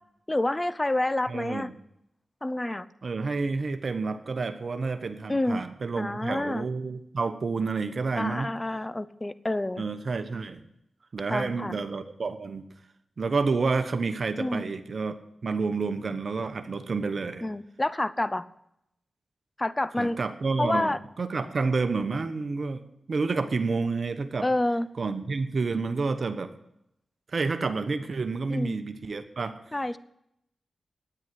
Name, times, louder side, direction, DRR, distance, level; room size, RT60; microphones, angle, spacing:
voice 1, 0.3-1.7 2.4-2.9 5.3-5.6 6.0-6.6 8.1-9.8 11.3-11.8 14.4-14.7 17.4-18.5 19.6-20.2 20.6-21.0 24.4-24.9 28.5-28.8 29.7-30.0, left 1 dB, 25° left, 17 dB, 0.7 m, -28 dB
voice 2, 1.3-1.7 3.0-8.6 9.8-10.7 11.1-12.6 13.2-15.2 15.4-17.4 20.0-22.8 23.1-24.5 25.0-26.5 27.3-29.6, right 4 dB, 60° right, 9 dB, 1.1 m, -29 dB
9.8 x 9.6 x 9.3 m, 0.79 s
cardioid pair, 40°, 0 cm